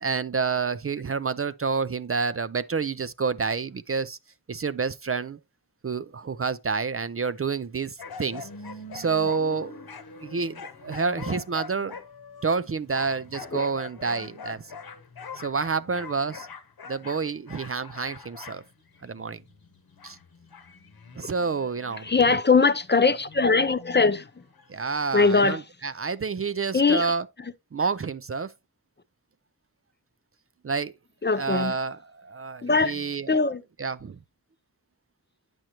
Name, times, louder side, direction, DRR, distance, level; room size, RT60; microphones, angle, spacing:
voice 1, 0.0-4.2 4.5-5.4 5.8-8.5 8.9-9.8 10.2-12.0 12.4-14.8 15.3-16.5 16.9-18.6 19.0-19.4 20.0-20.2 21.2-22.4 24.7-27.2 27.7-28.5 30.6-30.9 31.4-33.3 33.8-34.2, right 5 dB, 40° right, 0.4 m, -29 dB
sound 1, 8.0-22.4 22.9-24.7 25.3-25.4, left 5 dB, 85° left, 1.0 m, -43 dB
voice 2, 22.0-24.2 25.1-25.6 26.7-27.1 31.2-31.7 32.6-33.0 33.3-33.6, left 4 dB, 30° left, 0.5 m, -21 dB
9.1 x 6.2 x 2.9 m
wide cardioid pair, 55°, 36 cm